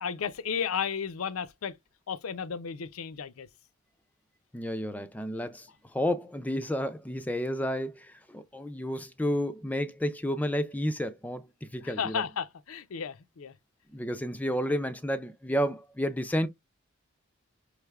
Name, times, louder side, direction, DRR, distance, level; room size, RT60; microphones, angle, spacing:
voice 1, 0.0-1.8 2.1-3.5 11.8-13.5, left 7 dB, 80° left, 0.5 m, -33 dB
voice 2, 4.5-12.2 13.9-16.5, equal, 5° left, 0.3 m, -31 dB
5.4 x 3.3 x 2.3 m
head